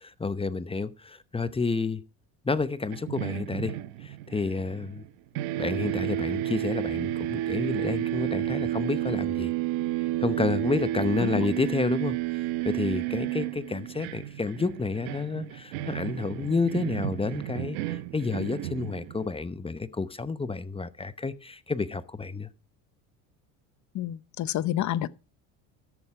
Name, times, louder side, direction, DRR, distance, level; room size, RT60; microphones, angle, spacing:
voice 1, 0.0-2.0 2.4-5.0 5.6-9.5 10.0-22.5, left 4 dB, 15° left, 0.8 m, -30 dB
sound 1, 2.9-5.1 5.3-19.3, right 14 dB, 85° right, 1.2 m, -31 dB
voice 2, 23.9-25.1, left 12 dB, 45° left, 0.8 m, -29 dB
13.5 x 8.0 x 4.8 m
supercardioid pair, 100°, 41 cm